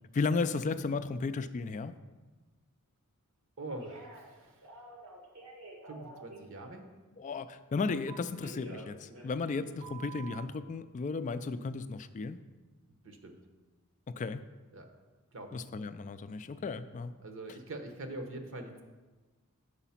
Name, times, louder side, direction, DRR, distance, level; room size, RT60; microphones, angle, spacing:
voice 1, 0.1-2.0 7.2-12.4 14.2-14.4 15.5-17.1, left 4 dB, 35° left, 12 dB, 0.3 m, -34 dB
voice 2, 3.6-4.6 5.9-6.8 11.2-11.4 13.0-13.4 14.7-14.9 15.3-15.6 17.2-18.8, right 2 dB, 60° right, 5 dB, 0.9 m, -44 dB
Telephone, 3.8-4.3 4.6-6.4 8.1-9.6 9.8-10.5, right 3 dB, 80° right, 1.4 m, -48 dB
6.9 x 4.9 x 5.7 m, 1.3 s
head